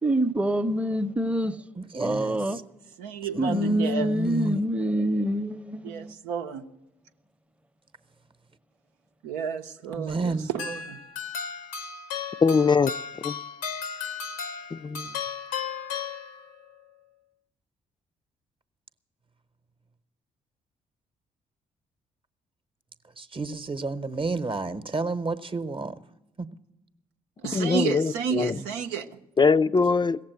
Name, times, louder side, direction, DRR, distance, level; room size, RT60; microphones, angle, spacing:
voice 1, 0.0-1.6 2.0-2.6 3.4-5.9, right 1 dB, 10° right, 0.8 m, -25 dB
voice 2, 1.8-2.6 3.3-4.7 9.9-10.5 23.2-25.9 26.4-26.5 28.6-28.7, right 3 dB, 30° right, 0.9 m, -31 dB
voice 3, 3.0-4.1 5.8-6.6 9.2-11.0 27.4-29.1, right 7 dB, 85° right, 0.7 m, -31 dB
sound 1, 10.6-16.7, left 6 dB, 90° left, 0.8 m, -35 dB
voice 4, 12.4-12.9 13.2-13.4 14.7-15.1 27.5-28.6 29.4-30.2, left 5 dB, 30° left, 0.4 m, -22 dB
16.5 x 7.4 x 9.1 m
hypercardioid pair, 50°, 16 cm